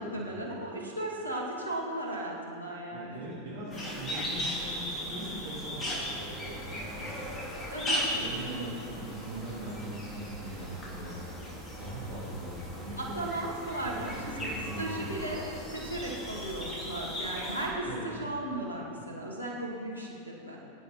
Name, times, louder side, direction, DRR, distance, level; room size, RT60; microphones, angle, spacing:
voice 1, 0.0-3.2 7.7-8.9 13.0-14.3 14.8-15.4 15.7-20.1 20.4-20.6, right 1 dB, 80° left, -2 dB, 2.2 m, -36 dB
voice 2, 2.9-7.5 8.2-11.1 11.8-13.3 13.8-15.2 17.8-18.1, right 1 dB, 55° right, -9 dB, 3.7 m, -41 dB
sound 1, 3.7-17.7, equal, 25° left, 3.6 m, -37 dB
20.5 x 9.3 x 4.3 m, 2.8 s
figure-of-eight pair, 90°, 0 cm